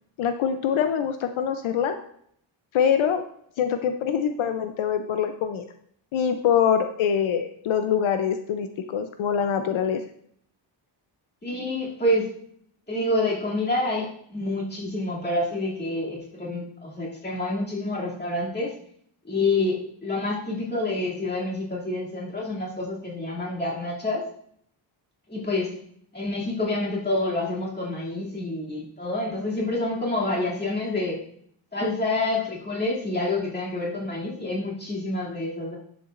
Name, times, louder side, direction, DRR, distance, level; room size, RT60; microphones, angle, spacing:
voice 1, 0.2-2.0 2.7-3.2 3.6-5.7 6.1-10.0, left 8 dB, 80° left, 7 dB, 0.7 m, -24 dB
voice 2, 11.4-12.3 12.9-18.7 19.2-24.2 25.3-25.7 26.1-31.2 31.7-35.8, left 2 dB, 20° left, -5 dB, 2.7 m, -27 dB
11.0 x 7.0 x 2.6 m, 0.66 s
wide cardioid pair, 135°, 47 cm